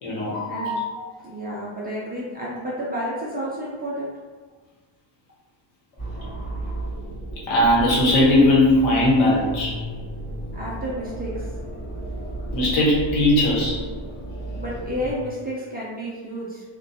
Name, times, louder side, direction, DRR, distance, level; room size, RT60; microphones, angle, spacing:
voice 1, 0.0-1.1 7.5-9.7 12.5-13.8, left 1 dB, 80° left, -5 dB, 1.0 m, -19 dB
voice 2, 1.2-4.1 10.5-11.4 14.6-16.6, equal, 25° right, -7 dB, 0.3 m, -31 dB
sound 1, 6.0-15.1, right 1 dB, 35° left, 1.2 m, -33 dB
2.3 x 2.2 x 2.7 m, 1.4 s
cardioid pair, 155°, 47 cm